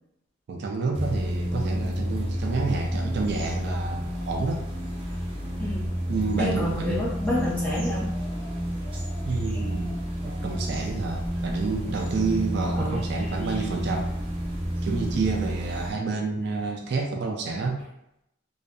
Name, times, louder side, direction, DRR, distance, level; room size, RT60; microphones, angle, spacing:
voice 1, 0.5-4.6 6.1-7.1 9.2-14.1 14.8-17.8, right 4 dB, 55° right, 1 dB, 0.3 m, -29 dB
sound 1, 0.9-15.9, equal, 25° right, 0.7 m, -30 dB
voice 2, 6.4-8.1 12.7-13.0, left 1 dB, 5° left, -8 dB, 0.8 m, -28 dB
2.6 x 2.3 x 2.2 m, 0.83 s
head